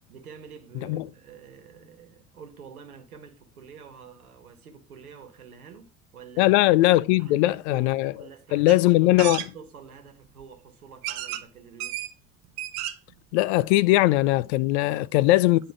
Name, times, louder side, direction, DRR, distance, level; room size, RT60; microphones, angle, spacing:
voice 1, 0.1-6.5 7.2-12.1 14.9-15.7, right 6 dB, 75° right, 1.3 m, -47 dB
voice 2, 6.4-8.1 8.5-9.4 13.3-15.7, left 17 dB, 50° left, 0.4 m, -20 dB
sound 1, 8.7-8.8 9.2-9.5 10.4-10.5 11.0-11.4 11.8-12.1 12.4-13.1 13.5-13.6 13.8-13.9, right 13 dB, 50° right, 0.8 m, -32 dB
9.7 x 4.4 x 4.9 m
figure-of-eight pair, 60°, 44 cm